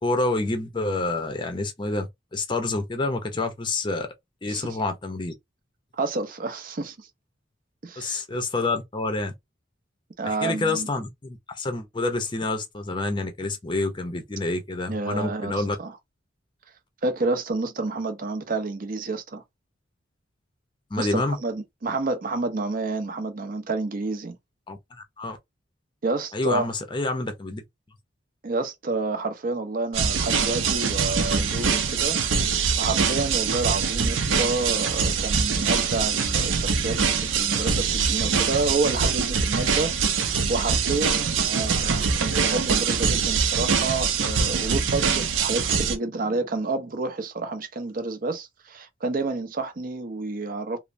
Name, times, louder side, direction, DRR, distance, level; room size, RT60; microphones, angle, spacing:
voice 1, 0.0-4.1 4.4-5.3 8.0-9.3 10.2-15.8 20.9-21.4 24.7-25.4 26.3-27.6, left 2 dB, 25° left, 0.6 m, -28 dB
voice 2, 6.0-7.1 7.8-8.2 10.2-10.9 14.9-16.0 17.0-19.4 21.0-24.4 26.0-26.7 28.4-50.8, right 3 dB, 45° right, 0.6 m, -29 dB
sound 1, 29.9-46.0, right 6 dB, 85° right, 0.6 m, -24 dB
3.1 x 2.0 x 2.5 m
head